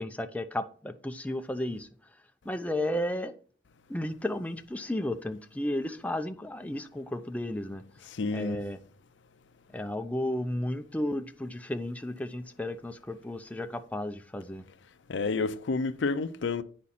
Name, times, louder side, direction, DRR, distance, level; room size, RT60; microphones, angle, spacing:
voice 1, 0.0-1.9 2.4-3.3 3.9-7.8 8.3-8.8 9.7-14.6, left 1 dB, 10° left, 0.5 m, -33 dB
voice 2, 8.1-8.6 15.1-16.6, left 3 dB, 75° left, 0.6 m, -29 dB
8.5 x 5.2 x 4.1 m
head